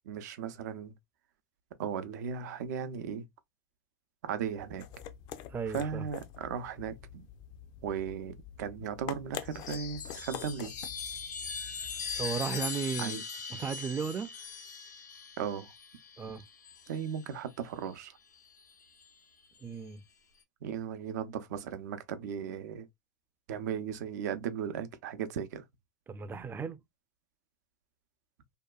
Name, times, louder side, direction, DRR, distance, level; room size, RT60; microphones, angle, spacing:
voice 1, 0.1-0.9 1.8-3.3 4.2-4.9 5.7-7.3 7.8-10.7 13.0-13.2 15.4-15.7 16.9-18.2 20.6-22.9 23.5-25.6, right 8 dB, 75° right, 0.5 m, -36 dB
sound 1, 4.4-12.6, left 10 dB, 50° left, 0.5 m, -46 dB
voice 2, 5.5-6.1 12.2-13.2 13.5-14.3 16.2-16.4 19.6-20.0 26.1-26.8, right 6 dB, 20° right, 0.4 m, -35 dB
Chime, 9.4-17.2 18.5-19.1, left 5 dB, 90° left, 0.8 m, -40 dB
2.8 x 2.2 x 2.3 m
hypercardioid pair, 100°, 9 cm